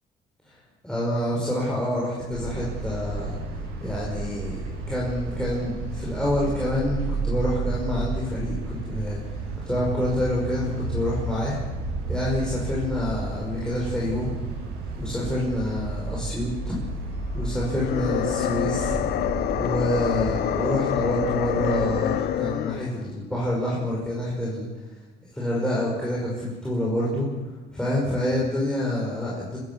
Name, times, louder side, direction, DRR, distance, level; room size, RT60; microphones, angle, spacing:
voice 1, 0.8-3.4 3.8-4.6 4.9-11.6 12.1-14.3 15.0-16.7 17.3-19.0 19.6-24.7 25.3-27.3 27.7-29.6, left 1 dB, 5° left, -5 dB, 5.6 m, -27 dB
sound 1, 2.3-22.2, right 3 dB, 85° right, 7.8 m, -32 dB
sound 2, 17.6-23.0, left 11 dB, 70° left, 1.0 m, -27 dB
25.0 x 15.0 x 7.0 m, 1.2 s
cardioid pair, 110°, 17 cm